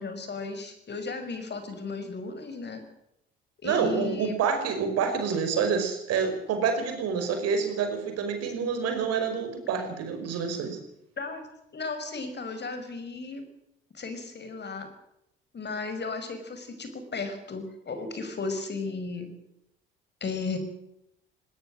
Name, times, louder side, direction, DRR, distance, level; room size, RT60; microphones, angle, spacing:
voice 1, 0.0-2.8 3.6-4.4 8.6-8.7 11.2-11.5 11.7-13.4 13.9-14.9 15.5-19.3 20.2-20.6, left 4 dB, 35° left, 8 dB, 5.5 m, -35 dB
voice 2, 3.6-10.8, right 6 dB, 55° right, 6 dB, 5.5 m, -27 dB
19.5 x 18.5 x 7.6 m, 0.80 s
figure-of-eight pair, 50°, 29 cm